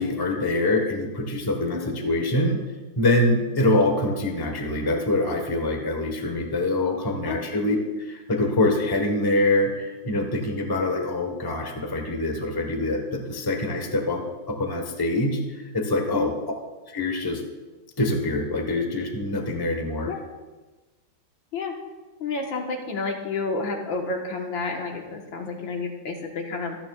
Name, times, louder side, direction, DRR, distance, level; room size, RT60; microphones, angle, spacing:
voice 1, 0.0-2.6 3.0-7.8 8.1-15.4 15.7-16.3 16.9-17.4 18.0-20.2, left 2 dB, 15° left, 3 dB, 0.9 m, -24 dB
voice 2, 22.2-26.8, left 4 dB, 75° left, 1 dB, 2.1 m, -30 dB
25.0 x 9.1 x 2.4 m, 1.2 s
omnidirectional pair, 2.1 m